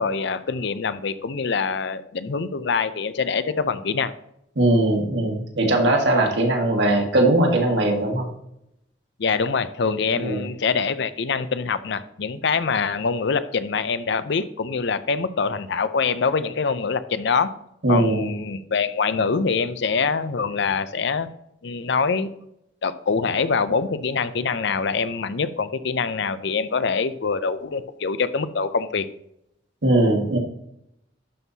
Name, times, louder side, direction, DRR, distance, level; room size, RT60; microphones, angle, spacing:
voice 1, 0.0-4.1 9.2-17.5 17.9-21.3 21.6-22.3 22.8-29.1, left 5 dB, 65° left, 13 dB, 0.5 m, -24 dB
voice 2, 4.6-8.3 10.1-10.4 17.8-18.3 29.8-30.4, right 1 dB, 65° right, 2 dB, 1.8 m, -20 dB
12.0 x 5.5 x 2.8 m, 0.78 s
head